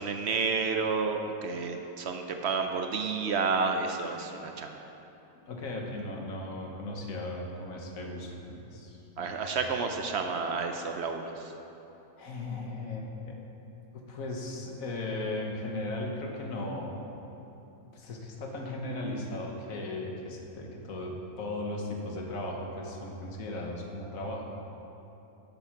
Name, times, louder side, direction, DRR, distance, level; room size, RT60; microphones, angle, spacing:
voice 1, 0.0-4.7 9.2-11.5, right 4 dB, 60° right, 5 dB, 0.7 m, -30 dB
voice 2, 5.5-9.6 12.2-13.4 13.9-17.0 17.9-24.5, left 2 dB, 70° left, 0 dB, 1.5 m, -37 dB
7.7 x 7.6 x 5.9 m, 3.0 s
omnidirectional pair, 1.5 m